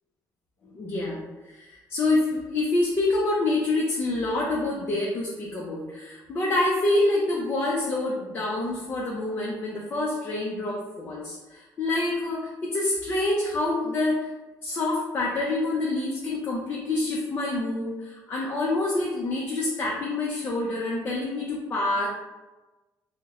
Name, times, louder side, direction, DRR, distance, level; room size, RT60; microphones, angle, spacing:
voice 1, 0.7-14.2 14.6-22.1, left 2 dB, 30° left, -4 dB, 0.4 m, -27 dB
2.9 x 2.1 x 3.5 m, 1.1 s
cardioid pair, 170°, 7 cm